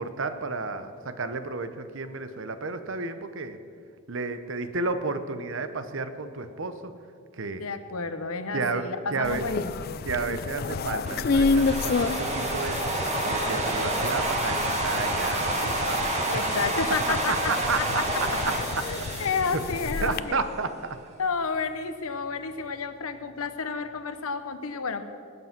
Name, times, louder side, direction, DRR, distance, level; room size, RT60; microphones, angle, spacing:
voice 1, 0.0-3.6 4.1-6.9 7.4-7.6 8.5-9.5 10.0-16.1 17.3-18.3 18.8-18.9 20.0-21.0, right 3 dB, 55° right, 10 dB, 0.8 m, -32 dB
voice 2, 7.5-10.0 16.3-17.5 17.8-17.9 18.4-18.5 18.8-20.4 21.2-25.0, left 4 dB, 75° left, 10 dB, 0.9 m, -31 dB
sound 1, 9.2-20.2, left 4 dB, 45° left, 0.3 m, -30 dB
sound 2, 11.1-20.3, right 2 dB, 30° right, 1.8 m, -29 dB
20.0 x 8.3 x 6.0 m, 2.3 s
head